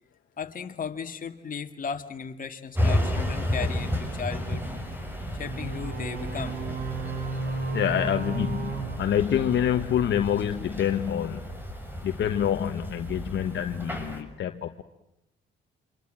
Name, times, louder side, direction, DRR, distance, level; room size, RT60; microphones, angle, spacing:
voice 1, 0.4-4.7 5.3-6.6, left 6 dB, 45° left, 6 dB, 2.3 m, -36 dB
sound 1, 2.7-14.2, left 1 dB, 10° right, 6.2 m, -32 dB
sound 2, 5.4-9.9, right 4 dB, 55° right, 5.0 m, -34 dB
voice 2, 7.7-11.4 12.0-14.8, left 9 dB, 65° left, 7 dB, 1.3 m, -27 dB
27.5 x 25.5 x 7.7 m, 0.85 s
cardioid pair, 90°, 20 cm